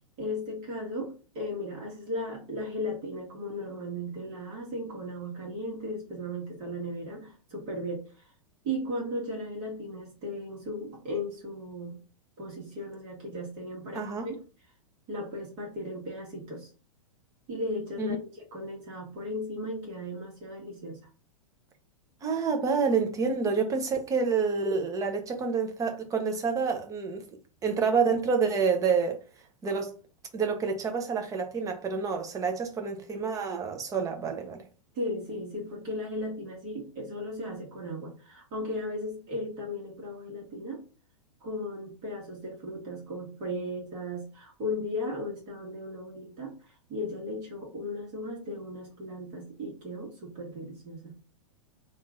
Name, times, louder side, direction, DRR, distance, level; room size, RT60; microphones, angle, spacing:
voice 1, 0.2-8.3 8.6-12.0 12.4-14.3 15.1-16.7 17.5-21.1 34.9-40.9 41.4-51.2, left 1 dB, 40° right, 1.8 m, -36 dB
voice 2, 13.9-14.3 18.0-18.2 22.2-27.2 27.6-29.2 29.6-29.9 30.3-34.6, right 5 dB, 20° right, 0.9 m, -28 dB
3.7 x 2.6 x 3.7 m
figure-of-eight pair, 100°, 17 cm